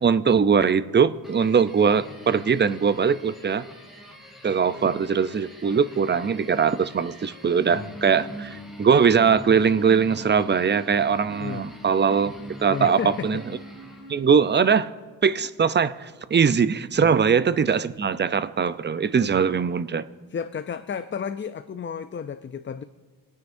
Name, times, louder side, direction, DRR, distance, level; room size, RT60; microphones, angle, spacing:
voice 1, 0.0-3.6 4.4-12.3 12.6-13.4 14.1-14.9 15.2-20.1, right 6 dB, 30° right, 14 dB, 0.6 m, -21 dB
sound 1, 1.2-14.4, equal, ahead, 3.1 m, -41 dB
voice 2, 12.7-13.4 17.0-17.2 19.2-19.3 20.3-22.8, left 7 dB, 30° left, 11 dB, 0.5 m, -32 dB
26.0 x 9.4 x 2.7 m, 1.4 s
cardioid pair, 70°, 36 cm